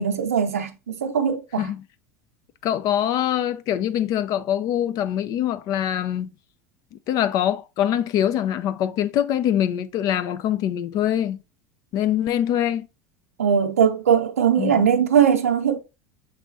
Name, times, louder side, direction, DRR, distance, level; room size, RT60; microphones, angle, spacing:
voice 1, 0.0-1.7 13.4-15.8, right 8 dB, 90° right, 0.6 m, -20 dB
voice 2, 2.6-6.3 6.9-11.4 11.9-12.9 14.6-14.9, left 10 dB, 50° left, 0.5 m, -24 dB
6.2 x 3.2 x 2.6 m
hypercardioid pair, 85°, 8 cm